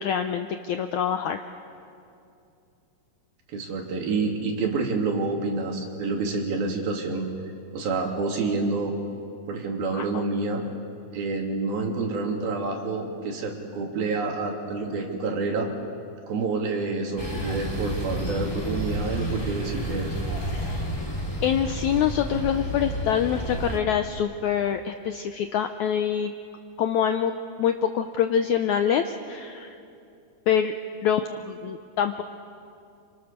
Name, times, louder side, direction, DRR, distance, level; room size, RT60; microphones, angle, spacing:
voice 1, 0.0-1.4 9.9-10.2 20.5-20.8 21.4-26.3 26.8-27.3 27.6-29.8 30.5-30.7 31.0-32.2, left 8 dB, 80° left, 7 dB, 1.7 m, -25 dB
voice 2, 3.5-7.3 7.7-8.9 9.5-10.6 11.1-15.7 16.3-20.1, right 3 dB, 75° right, 1 dB, 4.4 m, -28 dB
sound 1, 17.2-23.8, equal, 5° left, 2.8 m, -30 dB
29.0 x 26.0 x 6.7 m, 2.6 s
omnidirectional pair, 4.3 m